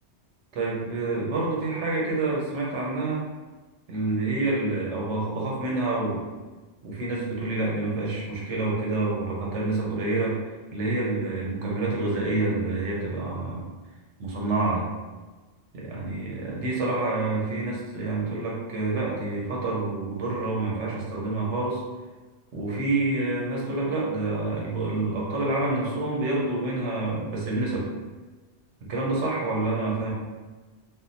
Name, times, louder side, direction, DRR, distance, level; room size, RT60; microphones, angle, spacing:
voice 1, 0.5-3.2 3.9-6.2 6.8-10.4 10.7-13.6 14.2-14.9 15.7-21.8 22.5-27.9 28.9-30.1, right 2 dB, 85° right, -4 dB, 1.2 m, -27 dB
3.6 x 2.4 x 2.6 m, 1.3 s
omnidirectional pair, 1.2 m